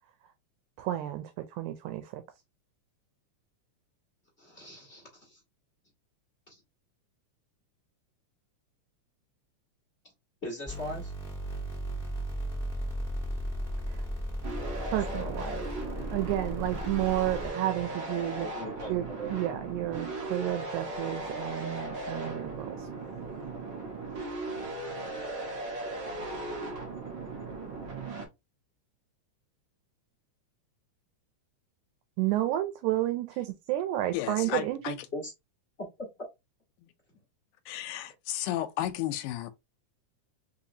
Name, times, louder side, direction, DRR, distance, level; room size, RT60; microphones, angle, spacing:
voice 1, 0.8-2.2 13.9-14.0 14.9-15.6 16.1-18.5 18.9-22.9 32.2-35.0, right 14 dB, 80° right, 2.0 m, -31 dB
voice 2, 4.4-5.4 6.5-6.6 10.4-11.1 14.8-15.4 18.4-19.4 34.4-34.6 35.1-35.3 36.0-36.1, equal, 60° left, 0.6 m, -40 dB
sound 1, 10.7-17.5, equal, ahead, 1.5 m, -35 dB
sound 2, 14.4-28.3, right 2 dB, 60° right, 1.2 m, -37 dB
voice 3, 34.1-35.0 37.7-39.5, left 13 dB, 85° left, 2.0 m, -33 dB
4.6 x 2.9 x 2.7 m
omnidirectional pair, 3.5 m